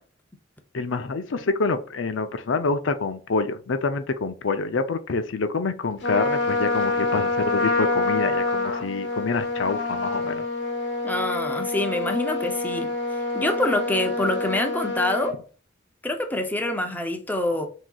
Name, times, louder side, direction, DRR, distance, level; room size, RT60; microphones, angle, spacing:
voice 1, 0.7-10.4, left 4 dB, 90° left, 0.5 m, -27 dB
Trumpet, 6.0-15.3, left 3 dB, 70° left, 1.0 m, -26 dB
voice 2, 11.0-15.4 16.0-17.7, left 1 dB, 10° left, 0.6 m, -26 dB
6.0 x 2.8 x 2.3 m
head